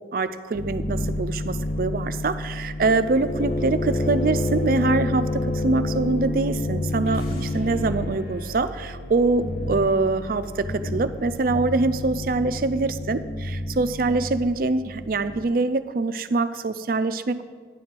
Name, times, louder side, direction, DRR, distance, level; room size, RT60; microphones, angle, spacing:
voice 1, 0.1-13.2 13.7-17.4, right 3 dB, 50° right, 12 dB, 0.4 m, -24 dB
sound 1, 0.5-8.2 9.3-9.9 10.5-11.1 11.4-15.4, left 2 dB, 35° left, 0.8 m, -28 dB
sound 2, 7.0-13.2, left 1 dB, 55° left, 1.7 m, -40 dB
10.0 x 4.5 x 7.5 m, 1.5 s
head